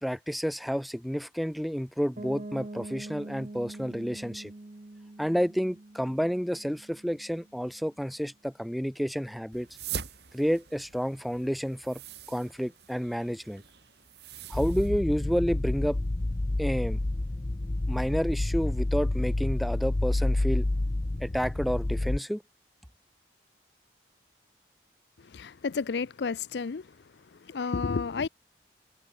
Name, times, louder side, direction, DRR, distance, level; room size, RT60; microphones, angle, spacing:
voice 1, 0.0-4.5 5.2-9.7 10.3-12.0 12.3-13.6 14.5-16.0 16.6-17.0 17.9-20.6 21.2-22.4, equal, ahead, 0.9 m, -30 dB
Piano, 2.2-7.9, right 2 dB, 40° right, 0.7 m, -44 dB
sound 1, 9.5-14.9, right 7 dB, 70° right, 4.5 m, -43 dB
sound 2, 14.5-22.2, left 2 dB, 25° left, 0.5 m, -29 dB
voice 2, 25.2-27.0 27.3-28.3, left 5 dB, 75° left, 0.5 m, -31 dB
head